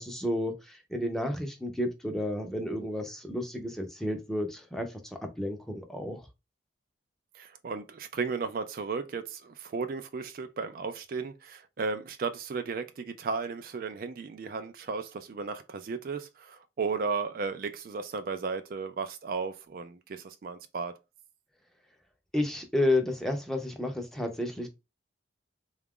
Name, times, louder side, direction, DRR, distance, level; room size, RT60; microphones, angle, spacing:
voice 1, 0.0-6.3 22.3-24.7, left 1 dB, ahead, 0.6 m, -31 dB
voice 2, 7.3-20.9, right 4 dB, 50° right, 0.3 m, -35 dB
3.9 x 2.4 x 3.6 m
head